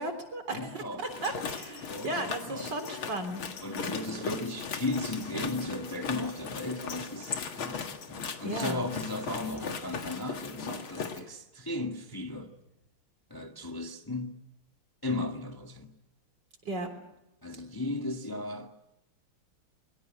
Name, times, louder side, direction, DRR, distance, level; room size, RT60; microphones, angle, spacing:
voice 1, 0.0-3.4 8.4-8.8 16.6-16.9, right 2 dB, 55° right, 4.2 m, -35 dB
voice 2, 0.5-1.2 1.9-2.8 3.6-12.5 13.3-14.4 15.0-15.9 17.4-18.7, left 2 dB, 10° left, 1.5 m, -36 dB
sound 1, 1.0-11.2, left 6 dB, 80° left, 2.6 m, -38 dB
22.5 x 22.5 x 9.0 m
omnidirectional pair, 2.2 m